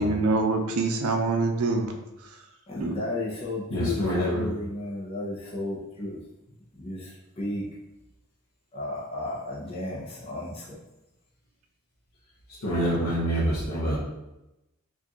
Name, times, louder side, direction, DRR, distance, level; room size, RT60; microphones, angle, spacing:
voice 1, 0.0-2.0 2.8-3.0, right 3 dB, 80° right, 4 dB, 0.5 m, -25 dB
voice 2, 2.7-6.2 6.7-7.7 8.7-10.8, left 2 dB, 25° left, -5 dB, 0.6 m, -33 dB
voice 3, 3.7-4.5 12.6-14.0, equal, 85° left, -8 dB, 1.0 m, -26 dB
4.5 x 2.5 x 2.9 m, 0.95 s
head